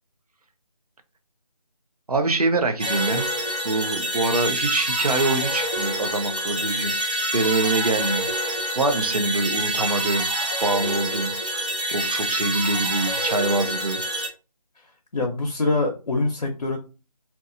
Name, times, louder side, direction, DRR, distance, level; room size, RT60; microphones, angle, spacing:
voice 1, 2.1-3.3 3.6-6.9 7.3-10.3 10.6-11.7 11.9-14.0, right 2 dB, 70° right, 0.6 m, -25 dB
sound 1, 2.8-14.3, right 1 dB, 10° right, 0.5 m, -26 dB
voice 2, 14.8-16.8, left 2 dB, 70° left, 0.7 m, -25 dB
2.7 x 2.2 x 2.5 m
figure-of-eight pair, 160°, 20 cm